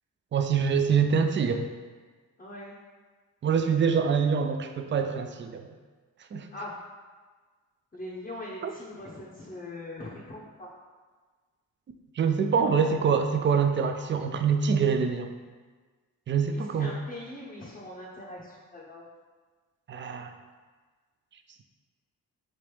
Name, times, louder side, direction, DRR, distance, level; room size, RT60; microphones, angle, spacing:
voice 1, 0.3-1.7 3.4-5.7 6.3-6.5 8.6-8.7 12.2-15.3 16.3-17.0 19.9-20.3, right 6 dB, 30° right, 7 dB, 0.4 m, -25 dB
voice 2, 2.4-2.7 6.5-6.8 7.9-10.7 12.8-12.9 16.5-19.0, left 1 dB, 20° left, -5 dB, 0.7 m, -41 dB
3.3 x 2.9 x 3.1 m, 1.4 s
hypercardioid pair, 40°, 40 cm